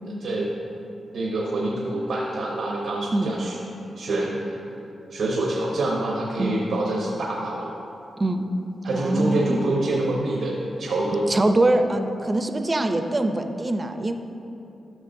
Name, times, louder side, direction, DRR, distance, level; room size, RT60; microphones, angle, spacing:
voice 1, 1.1-3.6 4.0-4.6 5.1-7.7 8.8-11.3, right 2 dB, 85° right, -3 dB, 0.9 m, -26 dB
voice 2, 8.9-9.6 11.3-14.1, right 1 dB, 30° right, 7 dB, 0.5 m, -23 dB
12.0 x 6.1 x 2.7 m, 2.8 s
cardioid pair, 70°, 0 cm